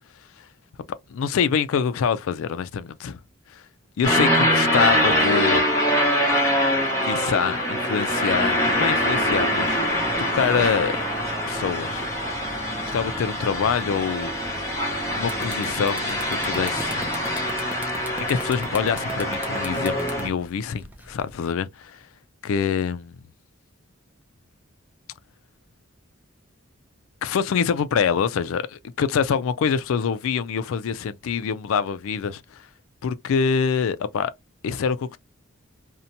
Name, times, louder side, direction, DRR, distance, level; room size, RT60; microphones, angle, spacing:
voice 1, 1.1-3.2 3.5-3.7 4.0-5.7 7.0-10.0 10.3-11.0 11.5-12.1 12.5-12.6 12.9-14.5 15.1-17.1 18.2-22.1 22.4-23.2 27.2-32.7 33.0-34.3 34.6-35.2, left 6 dB, 70° left, 0.3 m, -25 dB
sound 1, 4.0-20.3, equal, 15° left, 0.9 m, -24 dB
sound 2, 14.8-14.9 15.2-21.3, right 1 dB, 10° right, 0.4 m, -37 dB
2.7 x 2.1 x 2.6 m
head